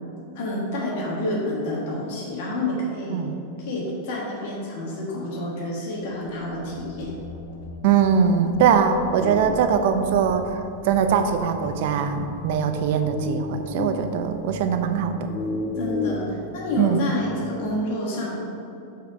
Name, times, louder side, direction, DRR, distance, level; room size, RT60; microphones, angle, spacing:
voice 1, 0.3-3.2 3.6-7.2 8.4-8.5 15.7-18.4, left 1 dB, 60° left, -3 dB, 1.5 m, -29 dB
sound 1, 6.0-14.6, left 4 dB, 80° left, 0.9 m, -41 dB
voice 2, 7.8-15.3 16.8-17.1, right 7 dB, 60° right, 7 dB, 0.6 m, -22 dB
sound 2, 9.1-17.8, left 3 dB, 25° left, 0.3 m, -34 dB
5.9 x 4.3 x 5.1 m, 2.6 s
supercardioid pair, 145°, 0 cm